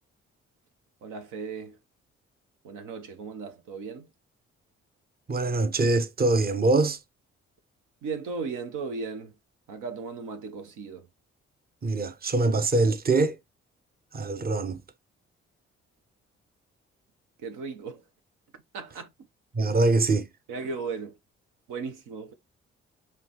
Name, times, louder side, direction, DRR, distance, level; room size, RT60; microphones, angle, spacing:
voice 1, 1.0-1.8 2.6-4.1 8.0-9.3 9.7-11.1 17.4-18.0 18.7-19.1 20.5-21.2 21.7-22.3, right 4 dB, 75° right, 0.8 m, -36 dB
voice 2, 5.3-7.0 11.8-13.4 14.1-14.8 19.5-20.3, right 2 dB, 30° right, 0.8 m, -23 dB
4.9 x 3.0 x 2.9 m
hypercardioid pair, 45°, 31 cm